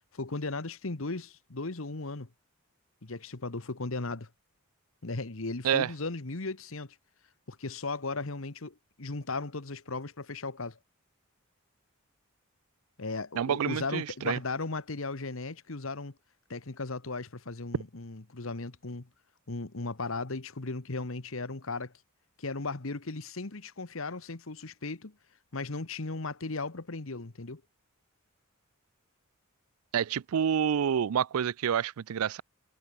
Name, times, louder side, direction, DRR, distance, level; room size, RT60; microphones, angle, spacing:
voice 1, 0.1-2.3 3.0-4.3 5.0-7.0 7.5-10.8 13.0-16.1 16.5-19.1 19.5-21.9 22.4-25.2 25.5-27.6, left 3 dB, 70° left, 1.4 m, -36 dB
voice 2, 13.3-14.4 29.9-32.4, right 8 dB, 90° right, 0.4 m, -28 dB
head